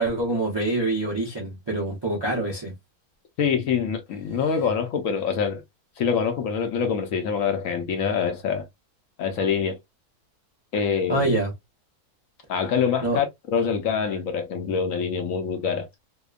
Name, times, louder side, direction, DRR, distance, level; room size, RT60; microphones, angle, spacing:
voice 1, 0.0-2.7 11.1-11.5 13.0-13.2, right 2 dB, 35° right, 0.4 m, -25 dB
voice 2, 3.4-5.6 6.0-8.7 9.2-9.8 10.7-11.3 12.5-15.9, left 6 dB, 70° left, 0.9 m, -25 dB
2.8 x 2.1 x 2.3 m
omnidirectional pair, 1.6 m